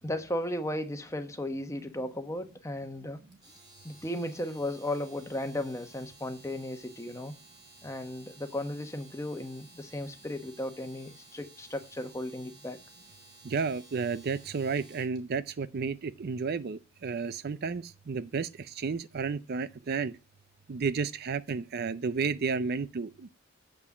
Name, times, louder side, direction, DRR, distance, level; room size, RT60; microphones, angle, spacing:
voice 1, 0.0-3.2 3.8-7.3 7.8-12.8, left 1 dB, 15° left, 1.1 m, -35 dB
Domestic sounds home sounds, 3.3-15.2, right 2 dB, 20° right, 3.5 m, -55 dB
voice 2, 13.4-20.2 20.7-23.3, right 5 dB, 50° right, 0.4 m, -32 dB
7.7 x 6.1 x 7.1 m
head